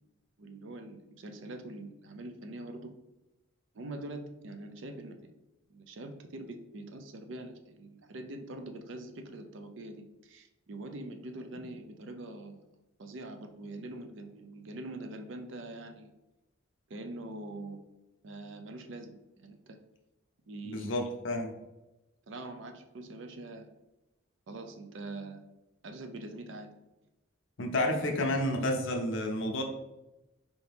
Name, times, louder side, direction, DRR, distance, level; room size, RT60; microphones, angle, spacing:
voice 1, 0.4-2.9 3.7-5.1 5.7-12.6 13.0-16.1 16.9-17.8 18.2-19.8 20.5-20.9 22.3-23.7 24.5-25.4 25.8-26.7, right 2 dB, 60° right, 6 dB, 0.5 m, -43 dB
voice 2, 20.7-21.6 27.6-29.6, left 1 dB, 65° left, 3 dB, 0.6 m, -30 dB
4.4 x 2.8 x 3.4 m, 0.98 s
head